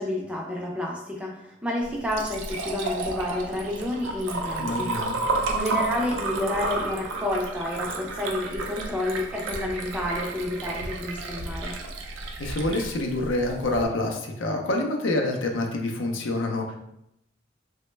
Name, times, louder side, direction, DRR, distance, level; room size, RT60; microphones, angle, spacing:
voice 1, 0.0-4.9 5.2-11.7, left 1 dB, 5° right, -3 dB, 0.4 m, -30 dB
Liquid, 1.8-13.8, right 3 dB, 80° right, 0.4 m, -32 dB
voice 2, 4.6-5.2 12.4-16.8, left 2 dB, 80° left, 2 dB, 0.5 m, -27 dB
3.0 x 2.2 x 3.1 m, 0.82 s
head